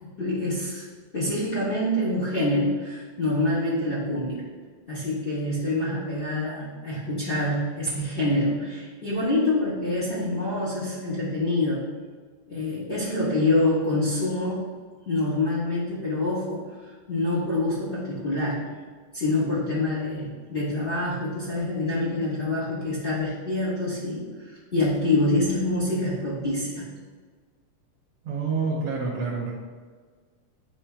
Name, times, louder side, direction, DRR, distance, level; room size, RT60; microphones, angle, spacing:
voice 1, 0.0-0.8 1.1-4.4 4.9-11.8 12.5-14.6 15.1-16.6 17.1-18.7 19.1-26.8, left 2 dB, 80° left, -10 dB, 0.4 m, -26 dB
voice 2, 28.2-29.5, right 4 dB, 70° right, -4 dB, 1.3 m, -27 dB
9.9 x 4.3 x 2.2 m, 1.5 s
omnidirectional pair, 3.4 m